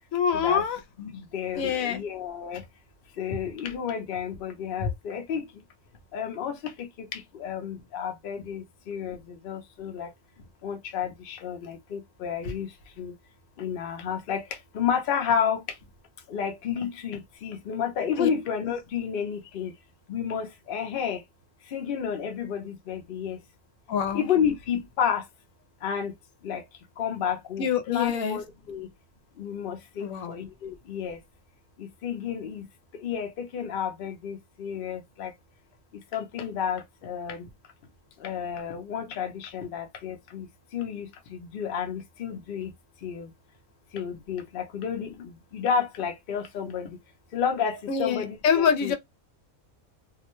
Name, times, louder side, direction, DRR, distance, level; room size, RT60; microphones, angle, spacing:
voice 1, 0.1-0.8 1.5-2.0 18.2-18.3 23.9-24.3 27.6-28.4 30.0-30.4 47.9-48.9, left 7 dB, 80° left, 1.0 m, -25 dB
voice 2, 1.0-2.6 3.2-5.4 6.1-9.2 9.4-10.1 10.6-12.7 13.0-13.1 13.6-14.4 14.7-15.6 16.3-19.7 20.1-21.2 21.7-23.4 24.1-25.2 25.8-26.1 26.4-26.6 27.0-28.9 29.4-31.2 31.8-32.7 33.0-35.3 36.1-37.5 38.2-40.5 40.7-42.7 43.0-43.3 43.9-46.9 47.3-48.9, left 7 dB, 55° left, 0.7 m, -31 dB
2.6 x 2.1 x 2.9 m
omnidirectional pair, 1.4 m